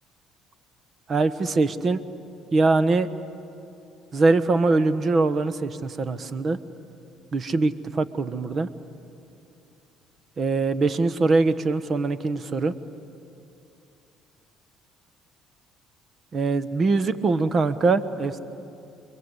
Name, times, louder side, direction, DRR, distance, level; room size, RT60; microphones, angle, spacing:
voice 1, 1.1-2.0 2.5-3.1 4.1-6.6 7.3-8.7 10.4-12.7 16.3-18.4, right 3 dB, 40° right, 13 dB, 1.3 m, -22 dB
29.5 x 22.5 x 8.2 m, 2.7 s
supercardioid pair, 80°, 0 cm